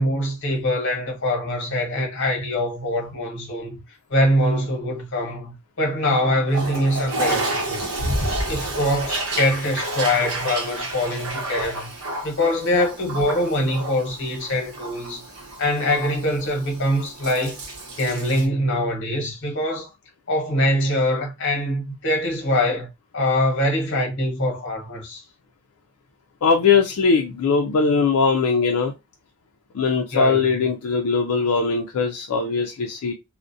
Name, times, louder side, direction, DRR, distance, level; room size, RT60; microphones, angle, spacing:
voice 1, 0.0-3.7 4.1-7.8 8.5-11.9 12.2-15.2 15.6-17.6 18.0-19.9 20.3-22.9 23.1-25.2 30.1-30.5, left 1 dB, 55° left, 0.9 m, -23 dB
Toilet flush, 6.5-18.5, right 1 dB, 85° right, 0.8 m, -30 dB
voice 2, 26.4-28.9 29.7-33.1, left 5 dB, 80° left, 0.4 m, -20 dB
2.4 x 2.1 x 2.6 m
head